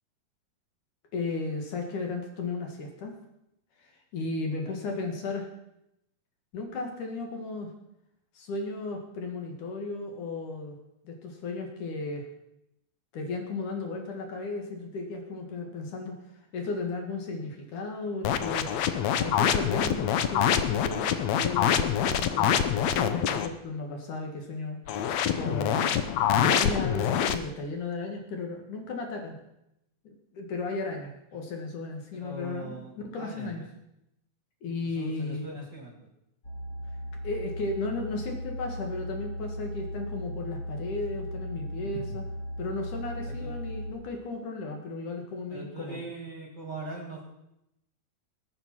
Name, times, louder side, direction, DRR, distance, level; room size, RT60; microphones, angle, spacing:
voice 1, 1.1-3.2 3.8-5.5 6.5-7.7 8.3-10.8 11.0-12.2 13.1-18.7 19.2-24.8 25.3-26.1 26.3-29.4 30.0-33.6 34.6-35.5 37.2-42.2 42.6-46.0, left 3 dB, 60° left, 3 dB, 3.1 m, -35 dB
sound 1, 18.2-23.5 24.9-27.4, left 9 dB, 85° left, 1.5 m, -25 dB
voice 2, 32.1-33.6 34.8-35.9 43.2-43.6 45.5-47.3, right 2 dB, 30° right, 0 dB, 2.4 m, -41 dB
sound 2, 36.4-43.9, equal, 30° left, 3.4 m, -37 dB
20.5 x 7.6 x 6.1 m, 0.84 s
omnidirectional pair, 4.2 m